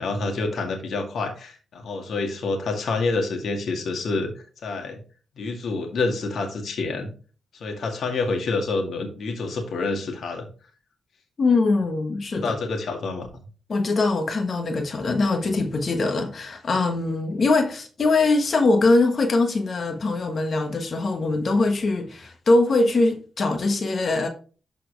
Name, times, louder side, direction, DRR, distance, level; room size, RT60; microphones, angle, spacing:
voice 1, 0.0-4.3 4.6-5.0 5.4-7.1 7.5-10.5 12.3-13.3, left 3 dB, 70° left, 2.1 m, -27 dB
voice 2, 11.4-12.5 13.7-24.3, left 3 dB, 50° left, 1.4 m, -22 dB
12.5 x 4.5 x 3.3 m
cardioid pair, 95°, 0 cm